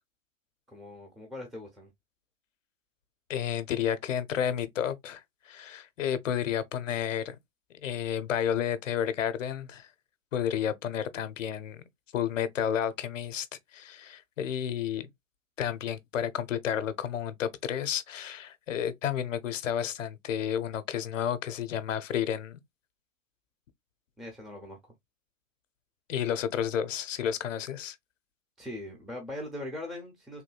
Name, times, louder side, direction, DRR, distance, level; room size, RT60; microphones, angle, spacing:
voice 1, 0.7-1.9 24.2-24.8 28.6-30.4, left 1 dB, ahead, 0.5 m, -40 dB
voice 2, 3.3-7.4 7.8-9.9 10.3-11.8 12.1-13.5 13.7-15.1 15.6-22.6 26.1-28.0, left 9 dB, 70° left, 0.7 m, -31 dB
3.5 x 2.6 x 2.2 m
hypercardioid pair, 110°, 39 cm